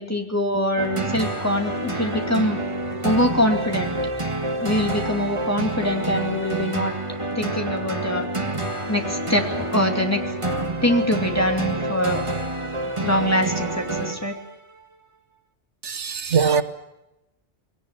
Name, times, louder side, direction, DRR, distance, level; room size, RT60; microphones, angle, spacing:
voice 1, 0.0-2.6 3.0-4.0 4.6-8.3 8.9-10.3 10.8-12.2 13.0-14.4, left 1 dB, 15° left, 3 dB, 2.6 m, -24 dB
sound 1, 0.8-14.5, right 2 dB, 25° right, 1.7 m, -28 dB
voice 2, 15.8-16.6, right 6 dB, 90° right, 10 dB, 1.6 m, -21 dB
21.5 x 18.0 x 9.2 m, 0.92 s
omnidirectional pair, 1.2 m